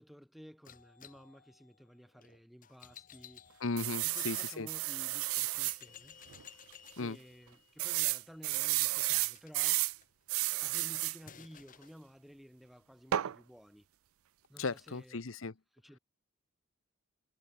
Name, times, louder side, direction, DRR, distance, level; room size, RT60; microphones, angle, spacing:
voice 1, 0.0-3.6 4.0-6.2 6.9-9.9 10.6-13.9 14.5-15.2 15.8-16.0, equal, ahead, 1.7 m, -54 dB
sound 1, 0.7-4.5 5.0-5.1 5.5-12.0, left 8 dB, 40° left, 1.3 m, -57 dB
voice 2, 3.6-4.7 7.0-7.2 14.6-15.5, left 3 dB, 75° left, 1.0 m, -36 dB
sound 2, 3.8-5.8 6.3-6.4 6.7-6.8 7.8-10.0 10.3-11.2 13.1-13.4, right 17 dB, 85° right, 0.4 m, -32 dB
head